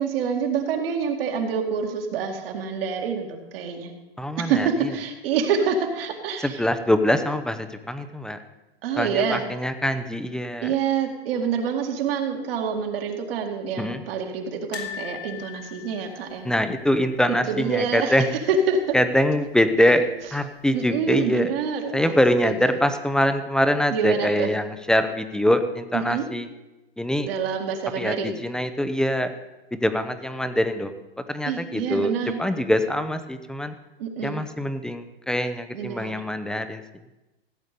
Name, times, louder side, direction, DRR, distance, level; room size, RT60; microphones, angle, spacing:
voice 1, 0.0-3.9 4.4-6.6 8.8-9.4 10.6-16.5 17.3-18.1 18.5-19.0 20.7-22.2 22.4-22.8 23.9-24.5 25.9-26.3 27.2-28.4 31.5-32.4 34.0-34.4 35.7-36.2, right 6 dB, 65° right, 2 dB, 2.2 m, -26 dB
voice 2, 4.2-4.7 6.4-8.4 9.0-10.7 13.8-14.0 16.4-18.3 18.9-20.0 20.3-21.5 21.9-26.5 27.0-27.3 28.0-29.3 29.7-30.9 31.3-32.1 32.4-33.7 34.2-36.8, equal, ahead, 9 dB, 0.6 m, -23 dB
sound 1, 14.7-17.8 18.0-18.2 18.5-18.6 19.8-20.4 20.9-21.0, left 9 dB, 85° left, 2.8 m, -40 dB
15.5 x 8.0 x 5.2 m, 1.0 s
hypercardioid pair, 125°, 31 cm